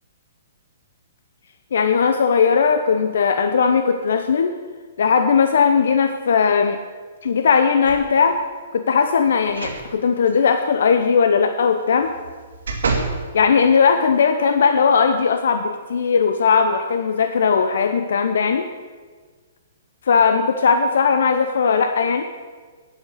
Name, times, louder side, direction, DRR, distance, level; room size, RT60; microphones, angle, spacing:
voice 1, 1.7-4.5 5.0-6.8 7.2-8.4 8.7-12.1 13.3-18.7 20.1-22.2, left 6 dB, 70° left, 7 dB, 0.9 m, -18 dB
sound 1, 7.8-8.4 9.5-9.8 10.3-10.4 12.0-13.2 13.8-13.9, right 4 dB, 85° right, 2.4 m, -27 dB
9.6 x 8.2 x 8.3 m, 1.5 s
hypercardioid pair, 170°, 0 cm